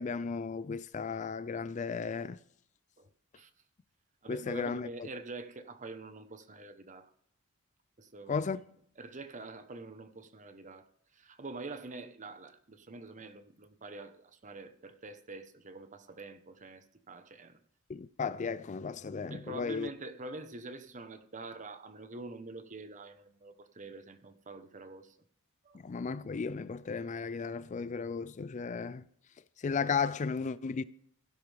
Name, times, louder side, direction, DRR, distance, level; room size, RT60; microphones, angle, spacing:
voice 1, 0.0-2.4 4.3-4.9 8.3-8.6 17.9-19.9 25.8-29.0 29.6-30.8, left 5 dB, 35° left, 0.4 m, -34 dB
voice 2, 4.2-7.1 8.0-8.4 9.0-10.9 11.1-17.6 19.3-25.2 25.6-25.8, right 3 dB, 35° right, 1.0 m, -46 dB
16.0 x 10.5 x 3.4 m
head